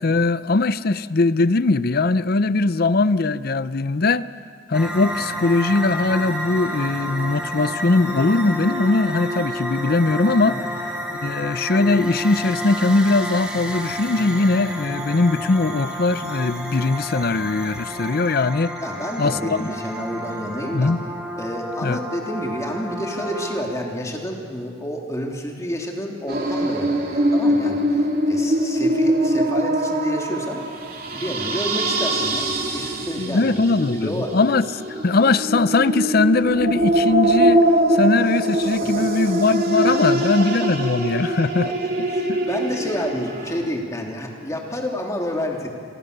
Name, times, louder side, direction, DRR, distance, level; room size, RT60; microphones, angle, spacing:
voice 1, 0.0-4.3 4.7-10.6 11.2-18.8 19.2-19.7 20.7-21.1 21.8-22.0 33.2-34.7 35.0-41.7 42.3-42.4, left 3 dB, 55° left, 0.6 m, -20 dB
sound 1, 4.7-23.6, equal, 5° right, 2.9 m, -30 dB
voice 2, 18.8-20.9 21.4-30.6 31.1-33.6 33.9-34.3 38.9-39.0 41.6-41.7 42.1-45.7, equal, 15° left, 3.1 m, -29 dB
sound 2, 26.3-43.6, right 1 dB, 50° right, 3.0 m, -22 dB
28.0 x 23.0 x 6.8 m
head